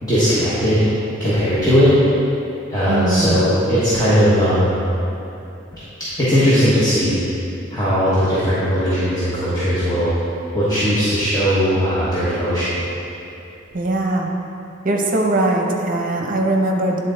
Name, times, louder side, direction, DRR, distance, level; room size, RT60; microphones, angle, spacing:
voice 1, 0.0-0.9 1.2-2.0 2.7-4.8 6.2-7.2 7.7-10.1 10.5-12.8, equal, 20° left, -11 dB, 1.2 m, -18 dB
voice 2, 2.9-3.6 13.7-14.3 14.8-17.0, right 2 dB, 45° right, 1 dB, 0.8 m, -20 dB
9.9 x 3.8 x 3.8 m, 2.8 s
head